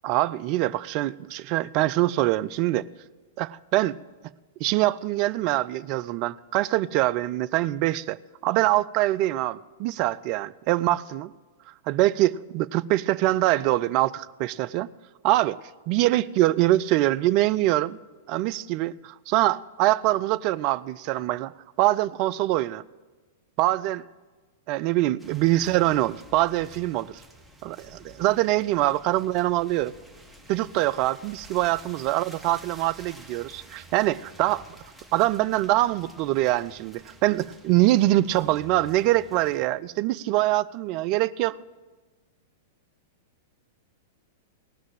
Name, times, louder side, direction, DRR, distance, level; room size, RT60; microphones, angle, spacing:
voice 1, 0.0-2.9 3.4-4.0 4.6-11.3 11.9-14.9 15.2-15.6 15.9-18.0 18.3-22.8 23.6-24.0 24.7-27.2 27.6-29.9 30.5-34.6 35.1-41.6, right 16 dB, 40° right, 0.4 m, -24 dB
sound 1, 25.2-39.7, right 1 dB, ahead, 1.5 m, -50 dB
18.5 x 6.2 x 7.6 m
figure-of-eight pair, 100°, 0 cm